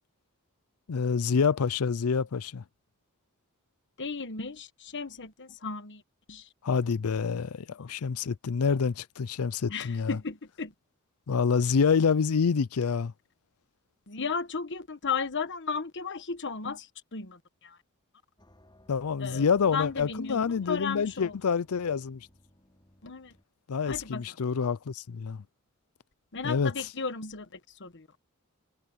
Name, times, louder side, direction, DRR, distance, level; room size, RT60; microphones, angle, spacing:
voice 1, 0.9-2.6 6.6-10.2 11.3-13.1 18.9-22.3 23.7-25.4 26.4-26.7, left 5 dB, 80° left, 0.5 m, -27 dB
voice 2, 4.0-6.0 6.3-6.8 7.8-7.9 9.7-10.7 14.1-17.8 19.2-21.3 23.0-23.3 23.8-24.4 26.3-28.1, left 5 dB, 55° left, 1.3 m, -35 dB
sound 1, 18.4-23.4, equal, 20° left, 6.2 m, -59 dB
head